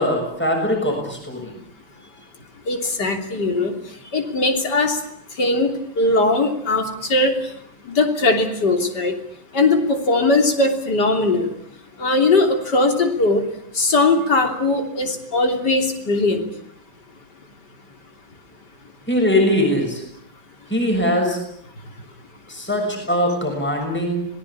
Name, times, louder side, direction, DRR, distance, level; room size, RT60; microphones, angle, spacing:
voice 1, 0.0-1.5 19.1-20.0 20.7-21.4 22.5-24.3, left 1 dB, 5° left, 3 dB, 6.5 m, -21 dB
voice 2, 2.7-3.8 4.1-5.0 5.4-7.3 7.9-9.2 9.5-11.5 12.0-13.4 13.8-16.4, left 2 dB, 55° left, 5 dB, 3.8 m, -19 dB
26.5 x 19.5 x 8.5 m, 0.72 s
omnidirectional pair, 2.2 m